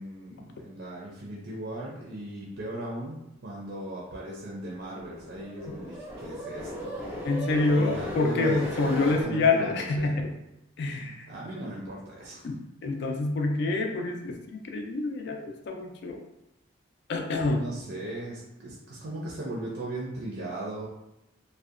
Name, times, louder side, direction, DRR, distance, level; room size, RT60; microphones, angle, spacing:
voice 1, 0.0-7.0 7.7-10.1 11.3-12.5 17.3-20.8, right 1 dB, 65° right, -4 dB, 0.5 m, -37 dB
sound 1, 4.6-9.3, equal, 10° right, 0.5 m, -37 dB
voice 2, 7.3-10.4 10.8-11.3 12.8-16.2 17.1-17.7, left 3 dB, 60° left, 3 dB, 0.3 m, -27 dB
2.6 x 2.1 x 2.4 m, 0.89 s
head